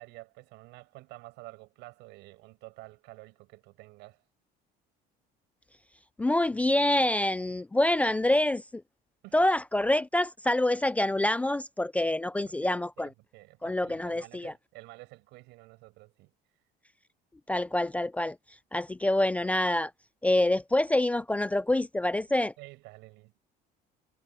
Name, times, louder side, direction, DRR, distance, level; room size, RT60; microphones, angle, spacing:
voice 1, 0.0-4.2 9.2-9.5 12.5-16.3 22.6-23.4, right 22 dB, 85° right, 7.1 m, -50 dB
voice 2, 6.2-8.8 9.3-13.1 13.6-14.5 17.5-18.4 18.7-19.9 20.2-22.5, left 1 dB, 10° left, 0.4 m, -26 dB
cardioid pair, 160°, 18 cm